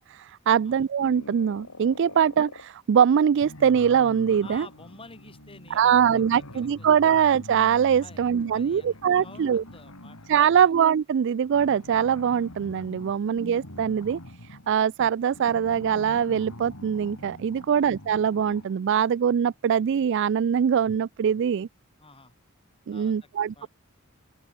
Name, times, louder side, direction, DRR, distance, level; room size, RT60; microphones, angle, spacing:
voice 1, 0.0-4.7 5.7-9.6 10.3-21.7 22.9-23.7, right 8 dB, 55° right, 0.3 m, -23 dB
sound 1, 1.0-2.7 3.3-10.5 11.5-18.9, left 1 dB, 85° left, 6.2 m, -44 dB
voice 2, 4.4-6.9 8.0-10.7 14.7-14.9 17.6-17.9 20.6-20.7 22.0-22.3 22.9-23.3 23.6-23.7, left 3 dB, 25° left, 7.1 m, -50 dB
open air
head